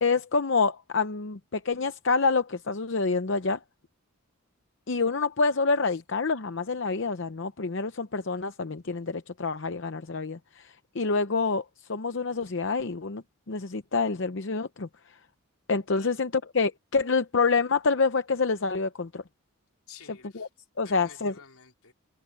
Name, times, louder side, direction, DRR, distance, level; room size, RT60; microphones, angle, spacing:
voice 1, 0.0-3.6 4.9-14.9 15.7-19.2 20.3-20.5 20.8-21.3, left 4 dB, 55° left, 0.7 m, -27 dB
voice 2, 19.9-20.5 20.8-21.9, left 7 dB, 80° left, 4.2 m, -51 dB
head